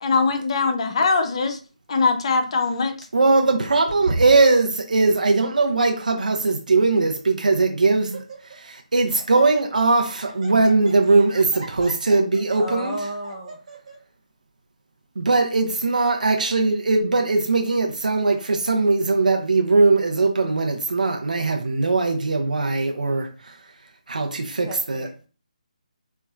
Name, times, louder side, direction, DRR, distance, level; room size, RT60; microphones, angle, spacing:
voice 1, 0.0-1.6 1.9-3.1, left 4 dB, 45° left, 0.6 m, -21 dB
voice 2, 3.1-8.2 8.6-13.0 15.2-23.5 24.1-25.1, right 3 dB, 80° right, 0.6 m, -20 dB
Laughter, 5.6-6.0 6.8-6.9 7.4-7.6 7.9-8.7 8.9-14.0, right 3 dB, 55° right, 1.0 m, -42 dB
voice 3, 12.5-13.6 24.6-25.3, equal, 5° right, 0.7 m, -33 dB
4.4 x 2.0 x 2.3 m
figure-of-eight pair, 155°, 4 cm